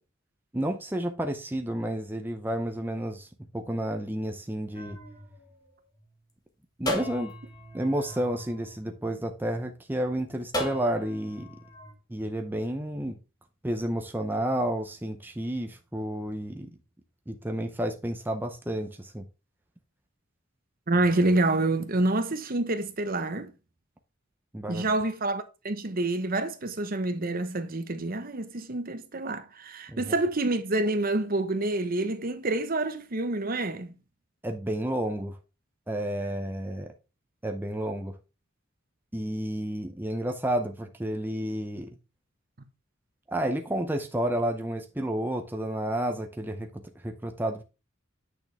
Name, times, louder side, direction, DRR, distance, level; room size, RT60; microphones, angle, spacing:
voice 1, 0.5-3.3 3.5-5.0 6.8-7.3 7.7-11.6 12.1-13.2 13.6-16.7 17.3-19.3 24.5-24.9 29.9-30.1 34.4-35.4 35.9-36.9 37.4-38.2 39.1-42.0 43.3-47.6, right 1 dB, 10° right, 0.6 m, -31 dB
sound 1, 4.7-6.2 6.9-9.4 10.5-11.9, equal, 20° left, 1.6 m, -37 dB
voice 2, 20.9-23.5 24.7-33.9, right 2 dB, 45° right, 1.0 m, -27 dB
8.6 x 6.4 x 3.3 m
head